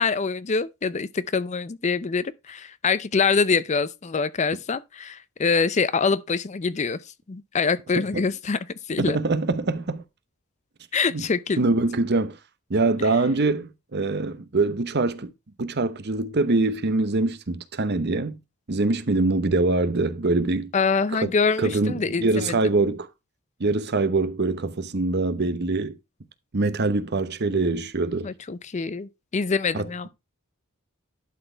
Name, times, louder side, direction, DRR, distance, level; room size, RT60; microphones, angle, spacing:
voice 1, 0.0-7.0 7.3-8.6 8.9-9.2 10.9-11.6 13.0-13.1 20.7-22.6 28.2-30.1, left 5 dB, 30° left, 0.4 m, -25 dB
voice 2, 9.0-10.0 11.1-11.2 11.6-12.4 12.7-15.3 15.6-18.4 18.7-20.7 21.2-21.3 21.6-23.1 23.6-25.9 26.5-28.3 29.7-29.9, right 3 dB, 50° right, 0.8 m, -24 dB
11.5 x 4.2 x 4.4 m
head